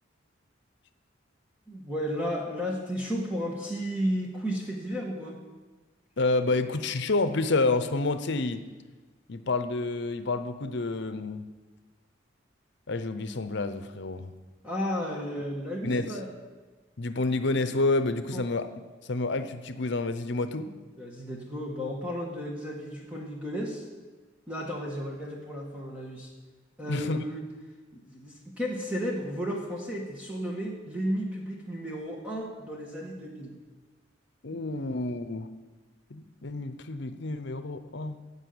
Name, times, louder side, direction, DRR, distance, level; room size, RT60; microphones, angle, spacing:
voice 1, 1.7-5.4 14.6-16.3 18.3-18.4 21.0-23.9 24.5-26.3 26.8-27.4 27.9-33.5, equal, 5° right, -3 dB, 1.5 m, -33 dB
voice 2, 6.2-8.6 9.3-11.4 12.9-14.3 15.8-16.1 17.0-18.7 19.1-20.7 26.9-27.2 34.4-35.5 36.1-38.2, left 3 dB, 65° left, 10 dB, 0.8 m, -29 dB
15.5 x 5.5 x 7.9 m, 1.3 s
head